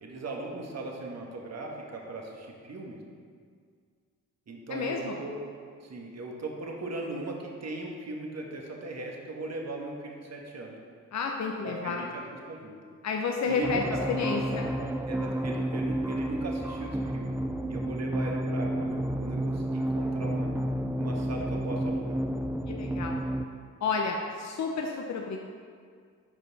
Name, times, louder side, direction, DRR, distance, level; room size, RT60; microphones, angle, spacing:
voice 1, 0.0-3.0 4.5-5.4 5.8-10.8 11.6-12.8 13.4-14.0 15.1-17.3 17.7-20.5 21.0-22.2, right 2 dB, 50° right, 0 dB, 1.5 m, -38 dB
voice 2, 4.7-5.1 11.1-12.0 13.0-13.8 14.1-14.7 22.7-23.2 23.8-25.4, left 5 dB, 55° left, 1 dB, 0.8 m, -31 dB
sound 1, 13.6-23.4, right 1 dB, 5° right, 0.5 m, -31 dB
10.5 x 5.5 x 4.1 m, 2.1 s
supercardioid pair, 55°, 34 cm